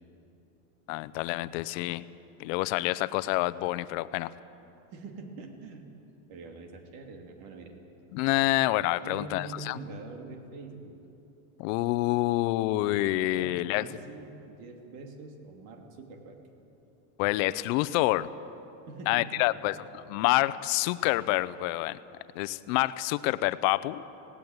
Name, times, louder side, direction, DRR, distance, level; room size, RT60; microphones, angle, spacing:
voice 1, 0.9-2.0 2.4-4.3 8.1-9.8 11.6-13.9 17.2-18.3 19.1-22.0 22.4-24.0, left 18 dB, 65° left, 15 dB, 0.7 m, -27 dB
voice 2, 4.9-5.9 6.3-7.7 9.0-10.9 13.3-16.4 18.9-19.7, right 3 dB, 60° right, 4 dB, 2.7 m, -44 dB
18.0 x 17.5 x 9.6 m, 2.9 s
cardioid pair, 170°, 42 cm